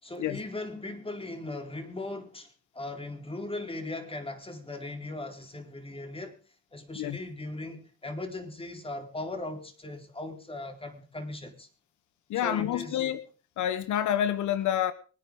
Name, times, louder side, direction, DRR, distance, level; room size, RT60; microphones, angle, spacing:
voice 1, 0.0-6.4 6.7-11.7 12.3-13.1, left 2 dB, 20° left, 4.1 m, -38 dB
voice 2, 12.3-13.2 13.6-14.9, left 10 dB, 80° left, 1.2 m, -28 dB
24.5 x 9.7 x 3.7 m
cardioid pair, 90°, 30 cm